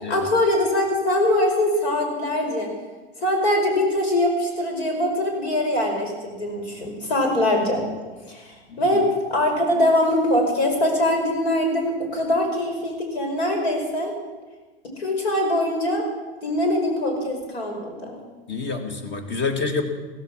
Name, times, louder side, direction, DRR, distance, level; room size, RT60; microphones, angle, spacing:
voice 1, 0.1-2.7 3.2-7.8 8.3-14.1 15.0-16.0 16.4-18.2, left 1 dB, 75° left, 2 dB, 5.2 m, -22 dB
voice 2, 8.7-9.0 18.5-19.8, left 4 dB, 35° left, 6 dB, 2.5 m, -28 dB
15.5 x 14.5 x 6.1 m, 1.3 s
hypercardioid pair, 100°, 31 cm